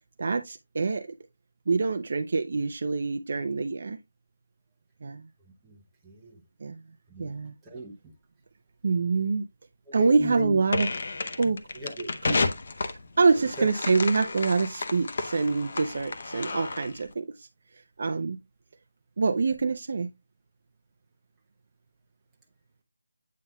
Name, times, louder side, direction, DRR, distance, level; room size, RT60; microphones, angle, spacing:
voice 1, 0.2-1.1 1.7-4.0 5.0-5.2 6.6-6.8 7.2-7.5 8.8-9.5 9.9-10.9 11.4-11.6 12.3-12.5 13.2-17.5 18.0-18.4 19.2-20.1, right 4 dB, 35° right, 0.5 m, -25 dB
voice 2, 5.6-6.4 7.1-7.3 7.6-8.1 9.9-10.6 11.4-12.1 13.3-13.7, right 1 dB, 5° right, 0.8 m, -38 dB
sound 1, 10.7-17.0, left 3 dB, 35° left, 0.7 m, -32 dB
8.4 x 5.4 x 2.3 m
figure-of-eight pair, 180°, 0 cm